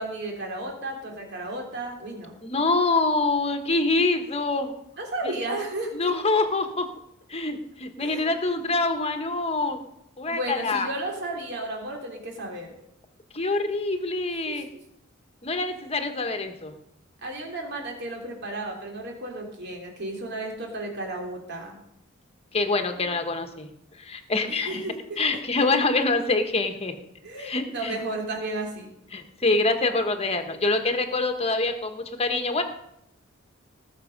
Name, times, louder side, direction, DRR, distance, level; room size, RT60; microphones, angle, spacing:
voice 1, 0.0-2.4 5.0-6.1 8.0-8.3 10.3-12.7 14.4-14.6 17.2-21.8 23.0-23.1 24.5-25.2 27.2-28.9, right 2 dB, 55° right, 1 dB, 3.2 m, -33 dB
voice 2, 2.4-4.7 5.2-5.3 5.9-6.9 7.3-9.8 10.2-10.9 13.3-14.7 15.4-16.7 22.5-23.7 24.0-24.8 25.2-26.9 27.4-28.0 29.1-32.6, left 3 dB, 30° left, 7 dB, 1.3 m, -25 dB
18.5 x 6.7 x 5.2 m, 0.78 s
head